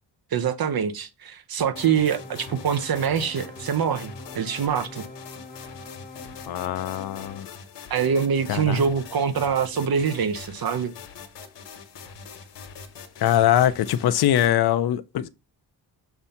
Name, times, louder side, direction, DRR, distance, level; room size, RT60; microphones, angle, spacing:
voice 1, 0.3-5.0 7.9-10.9, right 7 dB, 60° right, 0.8 m, -24 dB
sound 1, 1.6-7.4, left 2 dB, 20° left, 1.0 m, -43 dB
sound 2, 1.8-14.6, left 6 dB, 85° left, 1.2 m, -43 dB
voice 2, 6.5-7.5 8.5-8.8 13.2-15.4, left 11 dB, 65° left, 0.5 m, -22 dB
6.9 x 2.7 x 5.6 m
wide cardioid pair, 160°, 41 cm